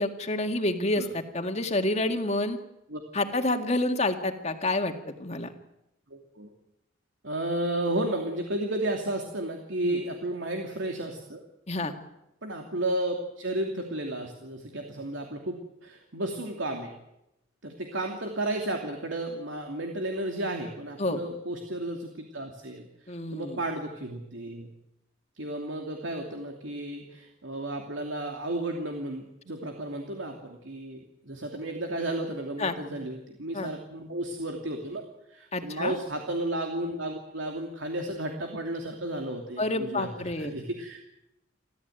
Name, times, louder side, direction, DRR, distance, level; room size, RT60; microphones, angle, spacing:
voice 1, 0.0-2.6 3.1-5.5 9.8-10.0 11.7-11.9 21.0-21.2 23.1-23.6 32.6-32.7 33.5-33.7 35.5-36.0 39.6-40.5, left 2 dB, 35° left, 6 dB, 2.0 m, -28 dB
voice 2, 6.1-6.5 7.2-11.4 11.8-11.9 12.4-16.9 17.6-24.7 25.4-35.0 35.3-40.1 40.4-41.2, right 1 dB, 75° right, 3 dB, 2.7 m, -33 dB
29.5 x 13.5 x 9.2 m, 0.87 s
head